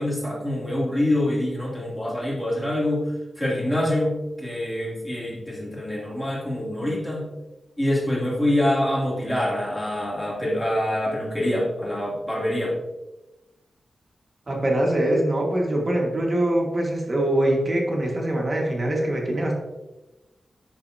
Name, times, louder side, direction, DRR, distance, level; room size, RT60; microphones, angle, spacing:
voice 1, 0.0-3.0 3.4-7.3 7.8-12.7, left 1 dB, 10° left, -6 dB, 2.6 m, -25 dB
voice 2, 14.5-19.6, right 1 dB, 30° right, -1 dB, 1.6 m, -23 dB
10.5 x 6.0 x 2.7 m, 1.1 s
wide cardioid pair, 175°, 0 cm